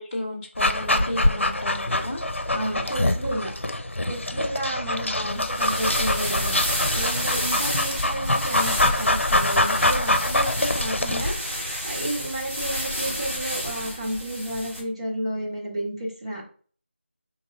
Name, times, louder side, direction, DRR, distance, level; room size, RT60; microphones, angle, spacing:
voice 1, 0.0-2.2 5.1-5.5, left 1 dB, 20° left, -6 dB, 0.9 m, -33 dB
Dog, 0.6-11.3, left 1 dB, 80° left, 0.6 m, -25 dB
voice 2, 2.5-3.5 4.0-6.6 6.9-11.3 11.8-16.5, right 1 dB, 30° right, -5 dB, 1.4 m, -31 dB
sound 1, 5.3-14.8, equal, 10° right, 0.7 m, -29 dB
4.3 x 3.0 x 3.9 m, 0.43 s
figure-of-eight pair, 175°, 7 cm